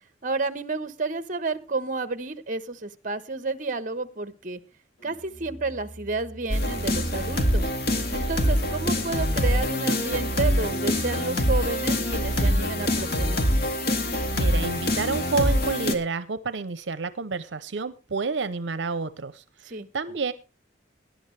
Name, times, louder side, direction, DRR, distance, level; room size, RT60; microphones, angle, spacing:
voice 1, 0.2-4.6 5.0-7.7 8.1-13.4 19.6-19.9, right 3 dB, 45° right, 13 dB, 1.1 m, -31 dB
Musical instrument, 5.0-8.5, right 1 dB, 80° left, 5.8 m, -46 dB
sound 1, 6.5-15.9, equal, 60° left, 2.0 m, -24 dB
voice 2, 14.4-20.3, right 4 dB, 75° right, 13 dB, 0.7 m, -29 dB
18.5 x 11.0 x 3.3 m, 0.30 s
head